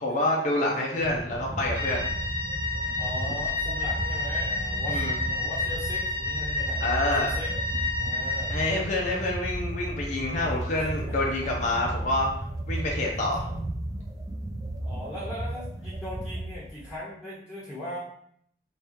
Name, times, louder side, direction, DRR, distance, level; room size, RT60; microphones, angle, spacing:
voice 1, 0.0-2.1 4.9-5.1 6.8-7.3 8.5-12.3 12.7-13.5, left 2 dB, 45° left, -2 dB, 0.6 m, -27 dB
sound 1, 1.0-13.9, right 1 dB, 45° right, 1.1 m, -41 dB
sound 2, 1.3-17.0, right 1 dB, 20° right, 0.4 m, -34 dB
sound 3, 1.7-8.6, left 3 dB, 75° right, 1.3 m, -30 dB
voice 2, 3.0-7.5 8.0-8.6 10.7-11.3 14.8-18.0, left 1 dB, 5° left, -11 dB, 1.3 m, -39 dB
3.5 x 3.2 x 2.9 m, 0.67 s
head